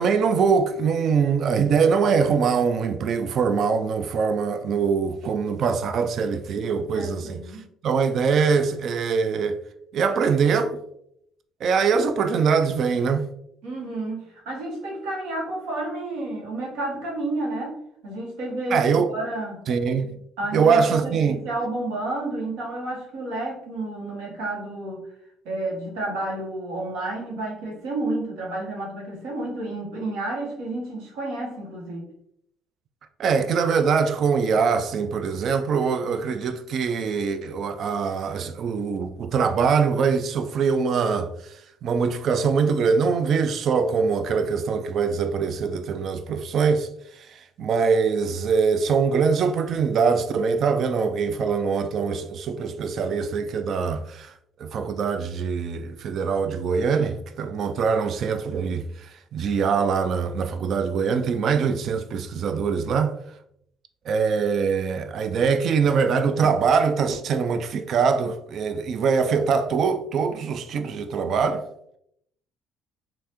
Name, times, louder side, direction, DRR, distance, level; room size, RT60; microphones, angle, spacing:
voice 1, 0.0-7.4 7.8-9.6 9.9-10.8 11.6-13.3 18.7-19.1 19.7-20.2 20.5-21.4 33.2-41.6 41.8-46.9 47.2-54.3 54.6-63.2 64.1-71.6, right 5 dB, 60° right, 0.3 m, -23 dB
voice 2, 6.9-7.7 13.6-17.8 18.0-19.6 20.4-25.0 25.4-32.1, right 2 dB, 75° right, 1.2 m, -31 dB
3.2 x 2.5 x 2.9 m
supercardioid pair, 70°, 0 cm